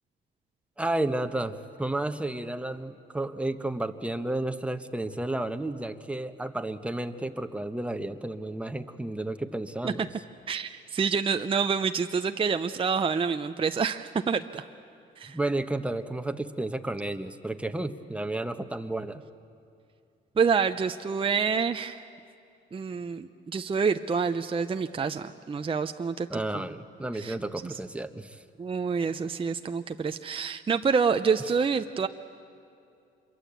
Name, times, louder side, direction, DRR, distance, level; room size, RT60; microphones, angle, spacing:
voice 1, 0.8-10.0 15.3-19.2 26.3-28.4, right 2 dB, 5° right, 8 dB, 1.1 m, -32 dB
voice 2, 10.5-14.6 15.2-15.4 20.4-22.0 22.7-26.7 27.1-27.4 27.6-27.8 28.6-32.1, right 5 dB, 25° right, 8 dB, 0.6 m, -27 dB
26.5 x 22.5 x 8.3 m, 2.5 s
cardioid pair, 90°, 20 cm